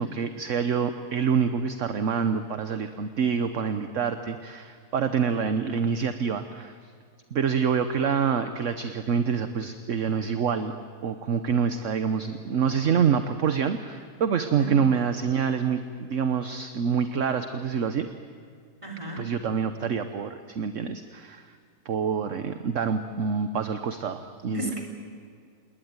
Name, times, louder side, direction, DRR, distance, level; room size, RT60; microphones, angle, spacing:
voice 1, 0.0-6.9 7.3-10.7 11.0-18.1 19.2-21.5 21.8-24.7, right 6 dB, 55° right, 9 dB, 1.3 m, -26 dB
voice 2, 18.8-19.3 24.5-24.8, right 2 dB, 20° right, 2 dB, 4.0 m, -33 dB
29.5 x 19.5 x 9.6 m, 2.1 s
omnidirectional pair, 1.6 m